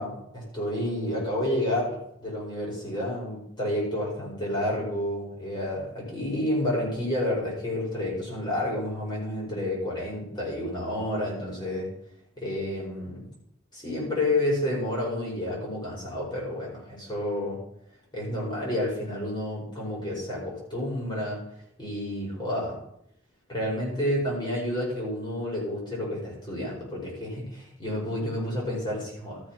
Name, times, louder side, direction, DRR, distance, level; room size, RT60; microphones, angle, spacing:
voice 1, 0.0-11.9 12.4-13.3 13.7-17.6 18.1-21.4 21.8-22.8 23.5-29.4, left 1 dB, 20° left, -5 dB, 5.4 m, -30 dB
13.5 x 6.7 x 6.0 m, 0.74 s
head